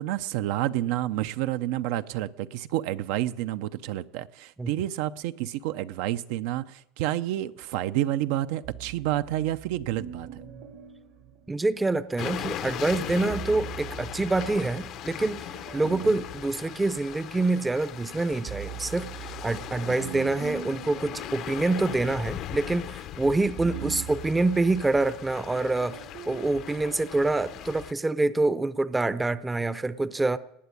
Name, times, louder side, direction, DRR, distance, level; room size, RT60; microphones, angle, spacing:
voice 1, 0.0-10.4 15.8-16.1 20.0-20.4 23.7-24.0, right 14 dB, 75° right, 0.6 m, -29 dB
sound 1, 8.6-12.1 13.1-17.5 18.0-27.2, right 9 dB, 50° right, 1.1 m, -44 dB
voice 2, 11.5-15.5 15.7-30.4, right 2 dB, 10° right, 0.6 m, -26 dB
sound 2, 12.2-27.9, left 11 dB, 50° left, 0.7 m, -39 dB
18.5 x 6.9 x 9.7 m
supercardioid pair, 130°, 0 cm